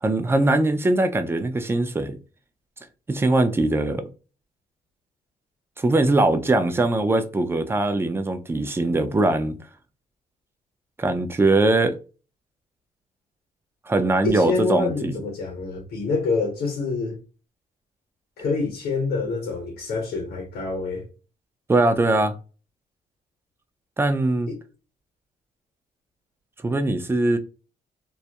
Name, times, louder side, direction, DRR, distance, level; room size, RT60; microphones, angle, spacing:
voice 1, 0.0-2.2 3.1-4.1 5.8-9.6 11.0-12.0 13.9-15.1 21.7-22.4 24.0-24.5 26.6-27.4, right 2 dB, 15° right, 0.4 m, -21 dB
voice 2, 14.2-17.2 18.4-21.0 24.5-24.6, left 3 dB, 80° left, 0.8 m, -26 dB
2.3 x 2.0 x 2.7 m
cardioid pair, 85°, 16 cm